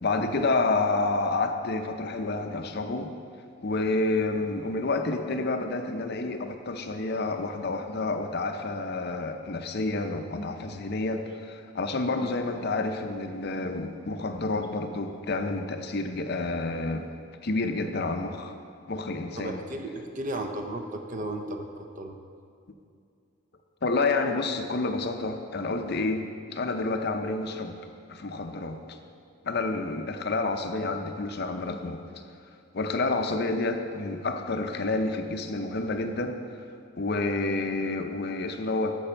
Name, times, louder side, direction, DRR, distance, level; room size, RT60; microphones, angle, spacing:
voice 1, 0.0-3.1 3.6-17.0 17.4-18.5 18.9-19.6 23.8-27.7 28.1-28.8 29.4-32.0 32.7-36.4 37.0-39.0, left 3 dB, 50° left, 6 dB, 0.6 m, -29 dB
voice 2, 19.3-22.2, right 1 dB, 35° right, 5 dB, 0.7 m, -35 dB
13.5 x 6.1 x 4.5 m, 2.4 s
head